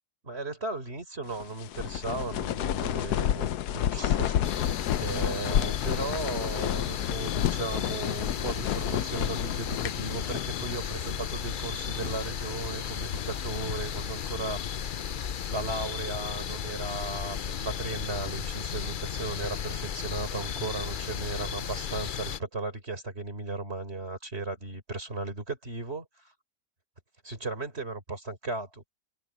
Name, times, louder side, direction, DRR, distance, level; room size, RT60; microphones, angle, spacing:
voice 1, 0.2-3.5 3.7-4.4 5.0-14.9 15.5-26.1 27.2-28.9, right 3 dB, 40° right, 4.3 m, -36 dB
sound 1, 1.3-10.8 11.1-11.2 11.8-12.3 12.8-13.9, left 11 dB, 80° left, 1.3 m, -31 dB
sound 2, 4.4-22.4, left 8 dB, 65° left, 0.5 m, -34 dB
omnidirectional pair, 1.7 m